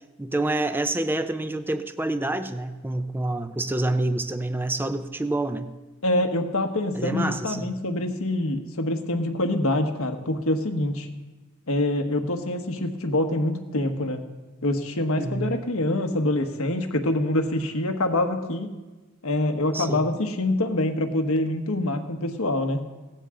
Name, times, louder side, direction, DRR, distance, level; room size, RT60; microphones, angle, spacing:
voice 1, 0.0-5.7 6.9-7.7 15.2-15.6 19.7-20.1, right 2 dB, 10° right, 10 dB, 0.5 m, -27 dB
voice 2, 6.0-11.1 11.7-14.2 14.6-18.7 19.2-22.8, left 1 dB, 85° left, 5 dB, 1.3 m, -25 dB
17.5 x 14.5 x 3.8 m, 1.2 s
head